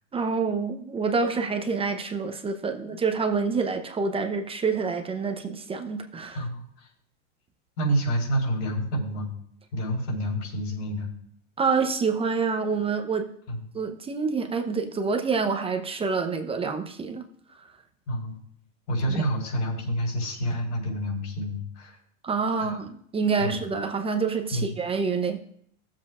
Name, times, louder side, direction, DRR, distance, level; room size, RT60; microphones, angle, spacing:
voice 1, 0.1-6.5 11.6-13.3 13.7-17.2 19.1-19.2 22.2-25.4, right 5 dB, 15° right, 6 dB, 0.7 m, -27 dB
voice 2, 6.3-6.9 7.8-9.3 9.7-11.1 13.5-13.6 18.1-18.3 18.9-22.0 22.6-22.8 23.4-23.6 24.5-24.6, right 1 dB, 65° left, -2 dB, 4.6 m, -28 dB
17.0 x 7.5 x 2.4 m, 0.67 s
supercardioid pair, 125°, 39 cm